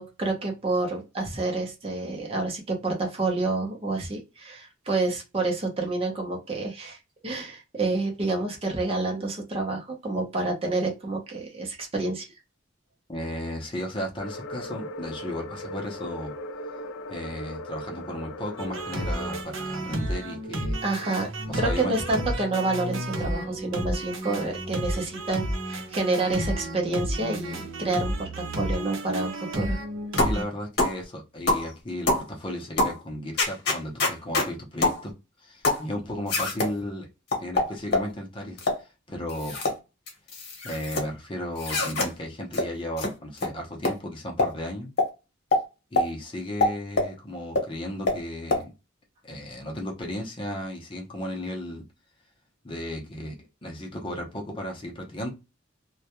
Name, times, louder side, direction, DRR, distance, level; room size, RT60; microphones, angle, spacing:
voice 1, 0.0-7.0 7.2-12.3 20.8-21.3 21.6-29.8, right 2 dB, 30° right, 1 dB, 0.6 m, -28 dB
voice 2, 13.1-16.3 17.1-20.8 21.5-21.9 30.1-35.1 35.4-37.1 37.4-39.6 40.6-44.9 45.9-48.7 49.2-51.8 52.6-53.4 53.6-55.3, left 1 dB, 25° left, 1 dB, 0.6 m, -35 dB
sound 1, 14.2-19.4, left 1 dB, 85° left, 0.4 m, -38 dB
sound 2, 18.6-30.4, right 1 dB, 75° right, 0.7 m, -32 dB
sound 3, 30.2-30.4 30.8-31.0 31.5-31.7 32.1-32.3 32.8-33.0 33.4-34.5 34.8-35.0 35.6-35.9 36.3-36.7 37.3-38.1 38.6-38.8 39.3-39.8 40.1-41.0 41.6-42.1 42.5-42.7 43.0-43.1 43.4-43.5 43.8-44.0 44.4-44.5 45.0-45.1 45.5-45.6 46.0-46.1 46.6-47.1 47.6-47.7 48.1-48.2 48.5-48.6, left 2 dB, 55° left, 0.9 m, -24 dB
2.2 x 2.2 x 2.8 m, 0.26 s
head